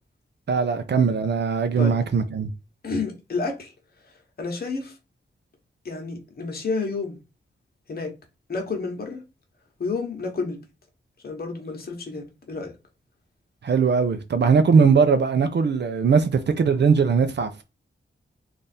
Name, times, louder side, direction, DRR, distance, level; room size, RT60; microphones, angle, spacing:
voice 1, 0.5-2.5 13.6-17.6, right 5 dB, 60° right, 0.5 m, -20 dB
voice 2, 2.8-3.7 4.4-5.0 5.8-7.2 7.9-8.1 8.5-9.2 9.8-10.6 11.2-12.7, left 4 dB, 50° left, 1.1 m, -30 dB
3.4 x 2.5 x 4.2 m
wide cardioid pair, 170°, 20 cm